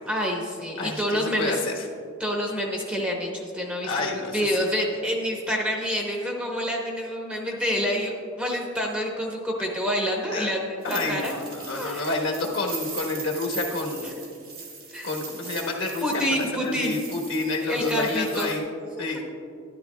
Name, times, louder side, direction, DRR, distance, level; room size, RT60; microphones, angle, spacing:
voice 1, 0.1-1.6 2.2-11.3 11.7-12.1 14.0-14.1 14.9-15.1 16.0-17.1 17.7-18.5 19.0-19.3, equal, 5° right, -1 dB, 0.9 m, -28 dB
voice 2, 0.8-1.9 3.8-4.4 10.3-10.5 10.8-14.1 15.0-18.6 19.0-19.2, left 3 dB, 65° left, -1 dB, 1.3 m, -29 dB
sound 1, 10.8-18.6, right 5 dB, 45° right, 1.6 m, -39 dB
13.0 x 11.0 x 2.3 m, 2.3 s
head